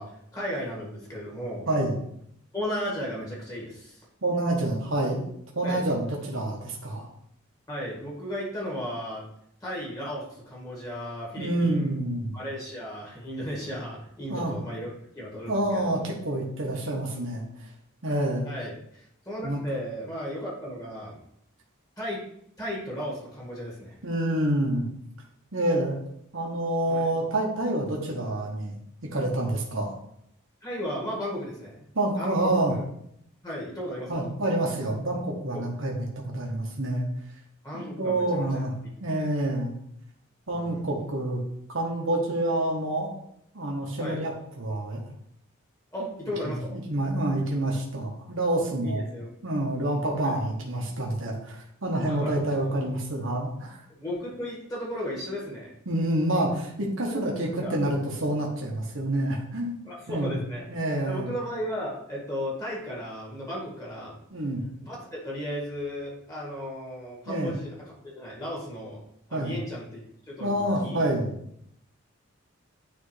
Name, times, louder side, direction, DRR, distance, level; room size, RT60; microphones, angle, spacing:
voice 1, 0.0-1.7 2.5-4.0 5.6-5.9 7.7-9.2 9.6-11.9 12.3-16.0 18.4-21.2 22.0-22.2 22.6-24.0 26.9-27.1 30.6-31.8 32.2-32.8 33.4-34.3 35.5-35.6 37.6-38.6 39.2-39.3 40.5-40.8 44.0-44.2 45.9-46.8 48.8-49.3 50.2-50.4 52.1-52.4 54.0-55.7 57.1-57.7 59.8-60.7 61.1-64.2 64.8-69.0 69.3-70.0 70.3-71.0, equal, 15° left, -5 dB, 1.9 m, -35 dB
voice 2, 4.2-5.3 5.5-7.1 11.4-12.4 14.3-14.6 15.5-17.4 18.0-18.5 19.4-19.6 24.0-24.9 25.5-26.0 26.3-28.8 29.1-30.0 31.9-32.7 34.1-36.0 36.3-37.1 37.7-38.7 39.0-39.7 40.5-41.4 41.7-43.1 43.5-45.0 46.4-49.1 49.4-53.8 55.9-59.8 60.1-60.4 60.7-61.3 64.3-64.6 67.3-67.5 69.3-69.6 70.4-71.3, right 1 dB, 65° right, -1 dB, 1.3 m, -27 dB
9.5 x 3.6 x 3.3 m, 0.72 s
head